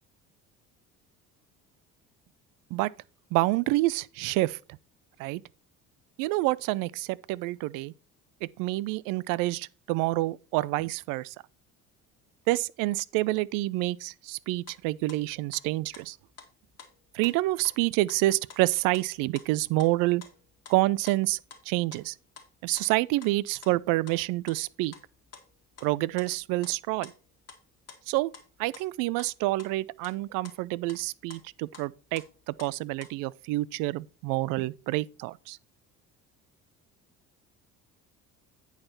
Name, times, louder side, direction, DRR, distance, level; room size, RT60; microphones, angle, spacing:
voice 1, 3.3-4.6 5.2-5.4 6.2-7.9 8.4-11.3 12.5-16.2 17.1-20.2 20.7-21.4 21.7-22.1 22.6-24.9 25.8-27.1 28.1-28.3 28.6-35.6, right 19 dB, 50° right, 0.5 m, -28 dB
sound 1, 14.5-14.8 15.1-15.6 15.9-17.3 17.6-19.5 19.7-19.9 20.2-21.6 21.9-22.5 22.8-23.3 23.6-24.2 24.5-25.9 26.2-27.6 27.9-29.3 29.6-29.8 30.0-30.2 30.4-31.9 32.1-33.3, left 6 dB, 35° left, 1.8 m, -50 dB
8.8 x 5.7 x 4.2 m
figure-of-eight pair, 55°, 45 cm